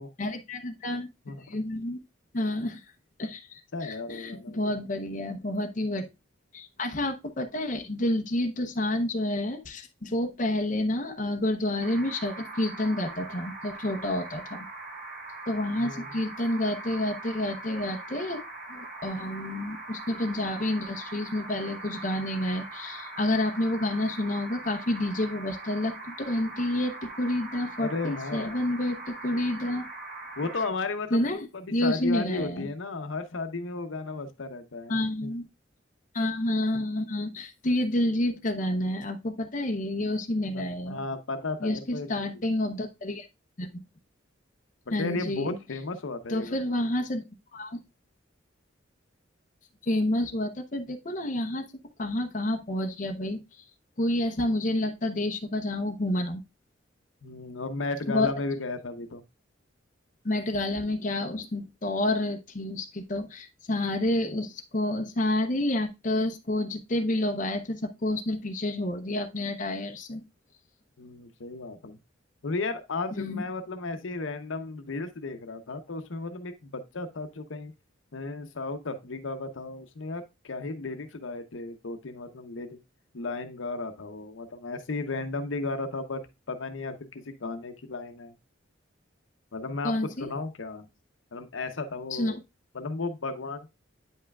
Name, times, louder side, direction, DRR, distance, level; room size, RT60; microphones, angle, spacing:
voice 1, 0.2-1.1 1.5-2.0 2.3-2.8 3.2-6.1 6.5-14.6 15.5-18.4 18.7-29.9 31.1-32.7 34.9-35.5 36.1-41.0 41.6-43.3 43.6-43.7 44.9-45.6 46.3-47.2 47.5-47.8 49.8-51.7 52.0-53.4 54.0-56.4 58.1-58.3 60.2-70.2 73.1-73.4 89.8-90.3 92.1-92.3, left 1 dB, 40° left, 5 dB, 0.8 m, -29 dB
voice 2, 3.7-4.7 15.8-16.2 27.8-28.5 30.4-35.3 40.5-42.4 45.0-46.8 57.2-59.2 71.0-72.0 72.4-77.7 78.1-82.8 83.1-86.2 86.5-88.3 89.5-89.9 90.2-90.9 91.3-92.4 92.7-93.7, left 3 dB, 80° left, 8 dB, 0.8 m, -34 dB
sound 1, 11.8-30.7, right 2 dB, 45° right, 4.6 m, -41 dB
9.2 x 5.5 x 2.3 m, 0.25 s
head